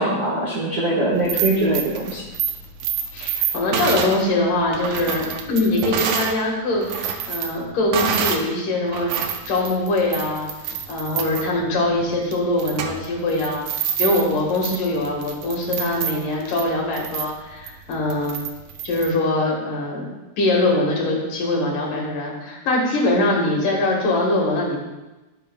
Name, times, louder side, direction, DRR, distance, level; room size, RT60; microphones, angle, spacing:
voice 1, 0.0-2.2, right 2 dB, 55° right, -6 dB, 1.0 m, -22 dB
sound 1, 1.1-6.4 6.7-8.5 8.9-19.1, right 7 dB, 90° right, 1.6 m, -28 dB
voice 2, 3.1-9.1 9.5-10.5 10.9-13.6 14.0-18.4 18.8-20.0 20.4-24.8, left 2 dB, 65° left, -1 dB, 3.0 m, -22 dB
16.0 x 6.8 x 2.3 m, 1.1 s
omnidirectional pair, 4.3 m